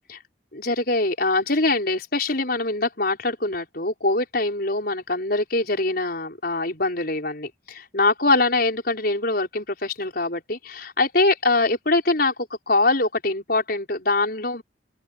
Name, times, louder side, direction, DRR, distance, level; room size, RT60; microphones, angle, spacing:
voice 1, 0.5-12.3 12.7-14.6, left 2 dB, 55° left, 5.6 m, -23 dB
open air
head